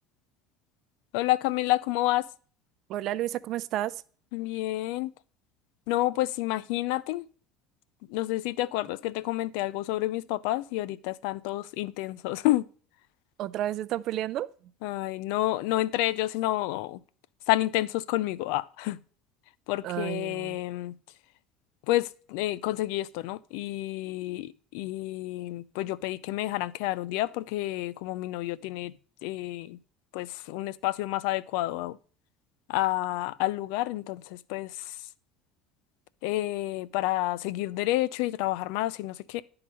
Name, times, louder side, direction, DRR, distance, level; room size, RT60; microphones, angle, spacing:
voice 1, 1.1-2.3 4.3-5.1 5.9-7.3 8.1-12.7 14.8-17.0 17.5-19.0 19.7-20.9 21.9-28.9 29.2-29.8 30.1-32.0 32.7-35.1 36.2-39.4, left 16 dB, 80° left, 0.4 m, -29 dB
voice 2, 2.9-4.0 13.4-14.5 19.8-20.6, right 13 dB, 60° right, 0.5 m, -31 dB
11.0 x 3.9 x 5.4 m
supercardioid pair, 105°, 0 cm